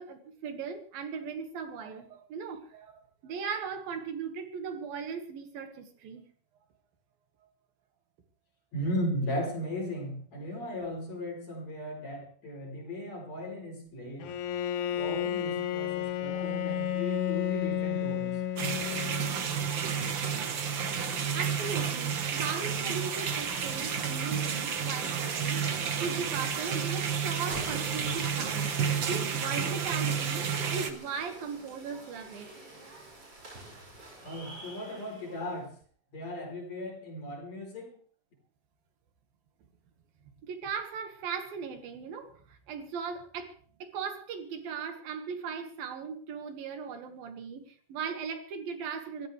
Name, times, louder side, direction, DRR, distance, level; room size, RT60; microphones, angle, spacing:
voice 1, 0.0-6.2 21.3-25.6 26.0-28.7 29.0-32.5 40.4-43.5 43.8-49.3, right 6 dB, 80° right, 3.6 m, -38 dB
voice 2, 8.7-14.4 14.9-18.3 34.2-35.7 36.1-37.9, equal, 50° left, 5.4 m, -36 dB
Bowed string instrument, 14.2-19.6, left 10 dB, 70° left, 2.2 m, -32 dB
sound 1, 18.6-30.9, right 7 dB, 55° right, 1.3 m, -31 dB
sound 2, 21.7-35.7, right 1 dB, 40° right, 6.5 m, -48 dB
25.5 x 14.5 x 3.4 m
omnidirectional pair, 4.1 m